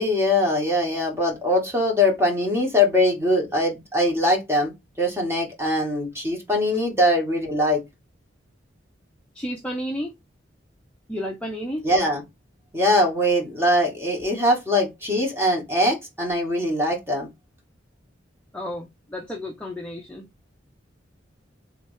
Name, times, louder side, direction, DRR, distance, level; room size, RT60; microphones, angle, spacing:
voice 1, 0.0-4.7 5.0-7.8 11.8-12.2 12.7-17.3, left 1 dB, 15° right, 1.6 m, -22 dB
voice 2, 9.3-10.1 11.1-11.9 18.5-20.3, equal, 5° left, 0.6 m, -32 dB
3.5 x 2.9 x 3.3 m
head